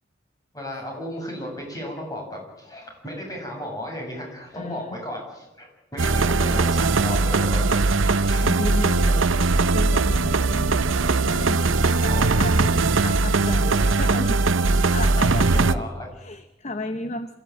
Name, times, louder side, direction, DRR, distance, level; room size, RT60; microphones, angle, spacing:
voice 1, 0.5-8.5 12.1-12.4 14.0-14.1 15.5-16.1, left 1 dB, 20° left, 0 dB, 7.7 m, -35 dB
voice 2, 4.5-5.0 8.4-9.3 9.7-10.8 11.2-14.4 14.9-15.9 16.2-17.3, left 2 dB, 35° left, 10 dB, 0.9 m, -33 dB
sound 1, 6.0-15.7, right 3 dB, 85° right, 0.8 m, -20 dB
27.0 x 15.0 x 9.1 m, 1.0 s
head